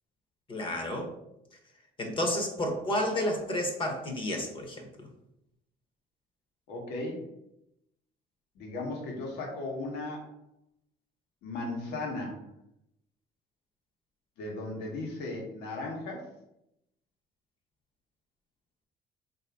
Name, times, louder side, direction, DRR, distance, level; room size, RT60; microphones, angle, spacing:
voice 1, 0.5-1.1 2.0-4.8, left 1 dB, 30° left, 2 dB, 0.9 m, -31 dB
voice 2, 6.7-7.2 8.5-10.3 11.4-12.5 14.4-16.3, left 2 dB, 80° left, 0 dB, 1.2 m, -36 dB
3.7 x 2.7 x 3.4 m, 0.82 s
cardioid pair, 110°, 17 cm